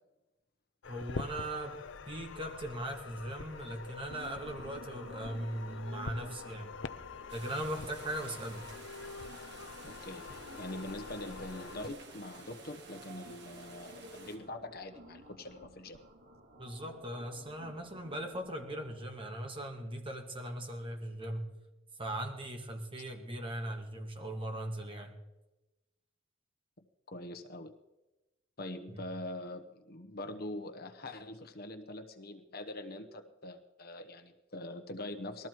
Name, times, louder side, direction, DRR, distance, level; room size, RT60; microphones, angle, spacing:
sound 1, 0.8-11.9, left 4 dB, 70° left, 0.6 m, -45 dB
voice 1, 0.9-6.8 7.3-8.7 16.6-21.5 22.0-25.1 28.9-29.0, right 1 dB, 25° right, 3 dB, 2.1 m, -39 dB
sound 2, 4.1-18.9, right 1 dB, 85° right, 2.8 m, -54 dB
sound 3, 7.3-14.4, right 4 dB, 60° right, 2.4 m, -53 dB
voice 2, 9.8-16.0 27.1-27.7 28.6-35.5, left 1 dB, 50° left, 7 dB, 1.1 m, -43 dB
19.5 x 14.0 x 4.6 m, 1.0 s
head